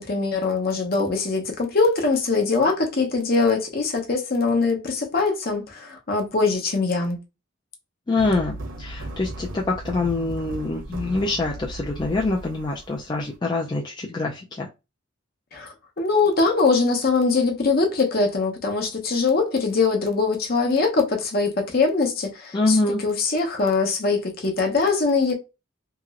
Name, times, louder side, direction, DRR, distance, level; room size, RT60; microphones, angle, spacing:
voice 1, 0.0-7.2 15.5-25.3, left 4 dB, 45° left, 0.8 m, -22 dB
voice 2, 8.1-14.7 22.5-23.0, left 2 dB, 20° left, 0.4 m, -25 dB
sound 1, 8.2-13.3, right 1 dB, 70° right, 0.9 m, -36 dB
2.9 x 2.9 x 2.4 m
head